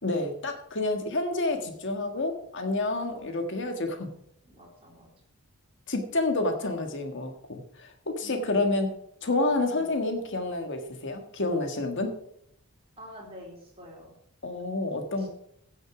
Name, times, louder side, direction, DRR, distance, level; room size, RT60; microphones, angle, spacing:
voice 1, 0.0-4.1 5.9-8.9 9.2-12.2 14.4-15.3, left 2 dB, 55° left, 5 dB, 1.5 m, -29 dB
voice 2, 4.4-5.1 8.2-8.8 9.7-9.9 13.0-14.1 15.2-15.3, left 1 dB, 25° right, -3 dB, 3.5 m, -48 dB
16.0 x 6.5 x 4.8 m, 0.74 s
head